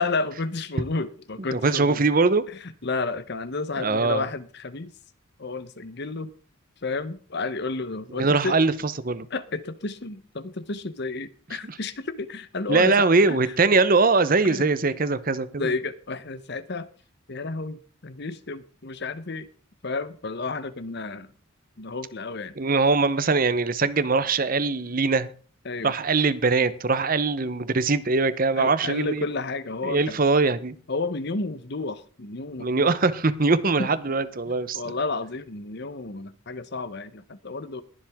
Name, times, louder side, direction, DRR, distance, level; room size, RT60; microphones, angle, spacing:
voice 1, 0.0-2.0 2.6-4.9 5.4-6.3 6.8-8.6 9.3-13.4 14.4-14.7 15.6-16.9 17.3-19.5 19.8-21.3 21.8-22.5 25.6-25.9 28.6-30.2 30.9-33.0 33.8-33.9 34.5-37.8, left 3 dB, 55° left, 14 dB, 0.9 m, -31 dB
voice 2, 1.5-2.4 3.8-4.2 8.2-9.3 12.7-15.7 22.6-25.3 25.8-29.2 29.8-30.7 32.6-34.8, right 3 dB, 45° right, 14 dB, 0.9 m, -22 dB
21.0 x 7.6 x 3.6 m, 0.40 s
head